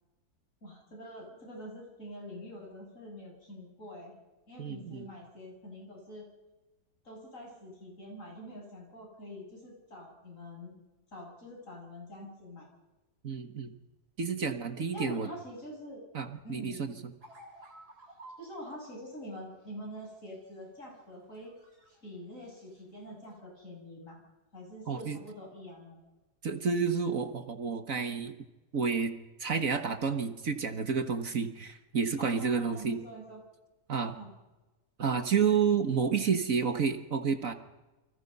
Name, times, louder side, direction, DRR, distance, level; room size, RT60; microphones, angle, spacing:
voice 1, 0.6-4.2 4.5-6.3 7.0-10.8 11.1-12.7 14.9-16.0 16.4-16.9 18.4-21.5 22.0-24.2 24.5-26.0 32.2-33.4 34.1-34.3, equal, 50° left, -1 dB, 8.4 m, -45 dB
voice 2, 4.6-5.1 13.2-13.7 14.2-15.3 16.1-17.1 24.9-25.2 26.4-28.4 28.7-29.1 29.4-33.0 33.9-34.1 35.0-37.5, right 6 dB, 60° right, 8 dB, 1.9 m, -30 dB
sound 1, 17.2-18.5 19.9-20.6 20.9-22.0 22.3-22.8 23.2-23.4, right 1 dB, 75° right, 4.9 m, -53 dB
29.5 x 25.0 x 5.5 m, 1.1 s
omnidirectional pair, 1.7 m